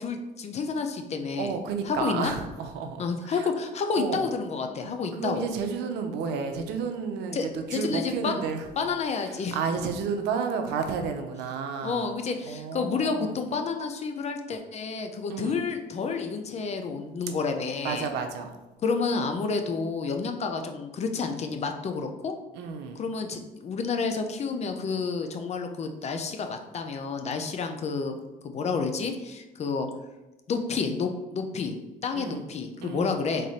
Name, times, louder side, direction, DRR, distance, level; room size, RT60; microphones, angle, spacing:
voice 1, 0.0-1.5 1.9-2.3 3.0-5.5 7.3-7.4 7.7-8.4 8.8-9.6 11.8-18.1 18.8-22.3 23.0-28.2 28.4-29.9 30.5-31.8 32.0-33.5, left 4 dB, 40° left, 5 dB, 0.6 m, -30 dB
voice 2, 1.4-3.5 4.0-4.2 4.8-8.7 9.2-12.1 12.4-13.3 15.3-15.6 17.8-18.6 22.5-23.0 32.1-32.4 32.8-33.2, right 5 dB, 90° right, 6 dB, 0.6 m, -32 dB
3.7 x 3.3 x 4.2 m, 1.1 s
cardioid pair, 110°, 17 cm